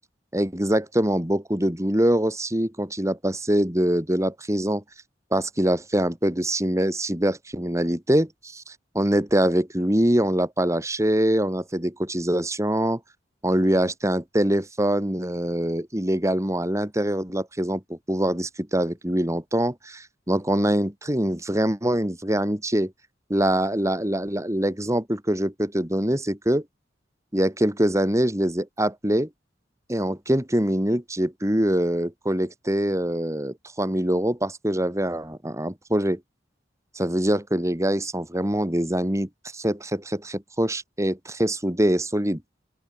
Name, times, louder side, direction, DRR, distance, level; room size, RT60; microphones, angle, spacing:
voice 1, 0.3-4.8 5.3-13.0 13.4-22.9 23.3-26.6 27.3-29.3 29.9-36.2 36.9-42.4, right 1 dB, 15° right, 3.3 m, -24 dB
open air
head